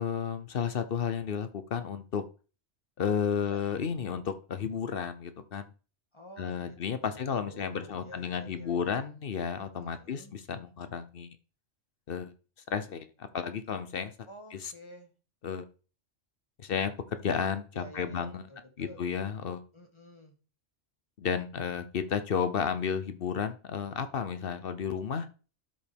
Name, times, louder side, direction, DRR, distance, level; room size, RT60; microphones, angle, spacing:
voice 1, 0.0-2.2 3.0-5.7 6.4-11.3 12.1-12.3 12.7-14.1 14.5-14.7 15.4-15.7 16.6-18.4 18.8-19.6 21.2-25.3, left 7 dB, 55° left, 11 dB, 0.9 m, -32 dB
voice 2, 6.1-9.0 9.7-10.3 14.3-15.1 17.7-19.0 19.7-20.3, equal, 25° left, 3 dB, 1.7 m, -50 dB
12.0 x 5.2 x 3.5 m, 0.35 s
omnidirectional pair, 1.2 m